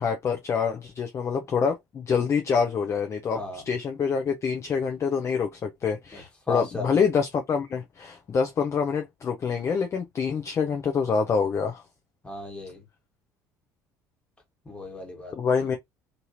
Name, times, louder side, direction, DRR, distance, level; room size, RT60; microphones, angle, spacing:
voice 1, 0.0-11.8 15.4-15.8, left 6 dB, 30° left, 0.5 m, -26 dB
voice 2, 3.3-3.6 6.1-7.1 12.2-12.8 14.6-15.3 15.6-15.8, left 1 dB, 10° left, 1.3 m, -36 dB
2.7 x 2.6 x 2.8 m
figure-of-eight pair, 60°, 9 cm